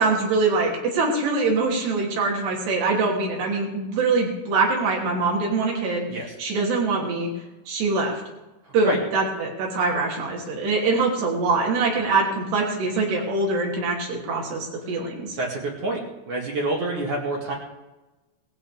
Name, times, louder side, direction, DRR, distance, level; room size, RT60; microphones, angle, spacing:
voice 1, 0.0-6.1 6.4-7.3 7.7-8.2 8.7-15.4, right 3 dB, 85° right, -2 dB, 5.2 m, -23 dB
voice 2, 15.4-16.0 16.3-17.5, right 1 dB, 55° right, -3 dB, 3.4 m, -27 dB
20.0 x 15.5 x 3.5 m, 1.1 s
omnidirectional pair, 4.7 m